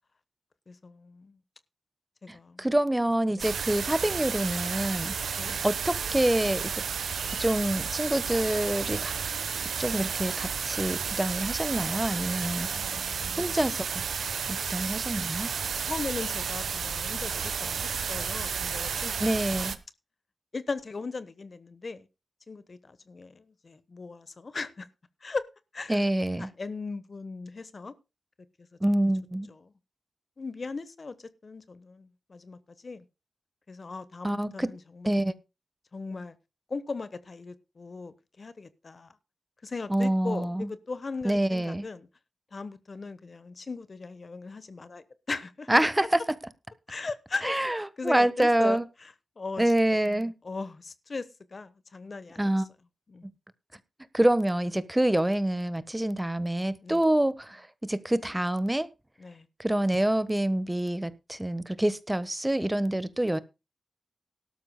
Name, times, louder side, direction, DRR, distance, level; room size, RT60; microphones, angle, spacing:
voice 1, 0.7-1.4 2.2-2.7 3.3-3.5 5.4-5.6 12.7-13.4 15.8-19.7 20.5-22.1 22.5-24.9 25.2-25.4 25.7-26.0 26.4-27.9 29.6-29.7 30.4-33.0 33.7-35.1 35.9-36.4 36.7-39.1 39.6-42.1 42.5-45.7 46.9-47.7 48.0-49.7 50.4-52.5 53.1-53.3 56.8-57.0 59.2-59.5, left 4 dB, 55° left, 1.1 m, -38 dB
voice 2, 2.3-5.2 5.6-6.8 7.4-9.1 9.8-12.7 13.3-14.0 14.5-15.5 19.2-19.8 25.9-26.5 28.8-29.5 34.2-34.7 35.0-35.3 39.9-40.7 41.2-41.9 45.7-46.2 47.4-48.8 49.6-50.3 52.4-52.7 53.2-53.3 54.1-58.9 59.6-63.4, right 1 dB, 15° right, 1.2 m, -26 dB
sound 1, 3.4-19.8, right 6 dB, 90° right, 0.9 m, -32 dB
18.0 x 12.5 x 2.2 m
cardioid pair, 45°, 0 cm